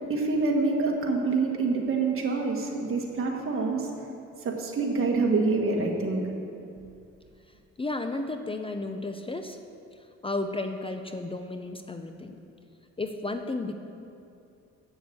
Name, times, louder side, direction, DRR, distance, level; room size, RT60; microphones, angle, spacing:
voice 1, 0.0-4.1 4.4-6.2, right 3 dB, 45° right, 0 dB, 1.6 m, -26 dB
voice 2, 7.8-9.6 10.2-12.4 13.0-13.7, left 2 dB, 20° left, 6 dB, 0.6 m, -33 dB
7.9 x 6.9 x 7.8 m, 2.6 s
cardioid pair, 90°, 30 cm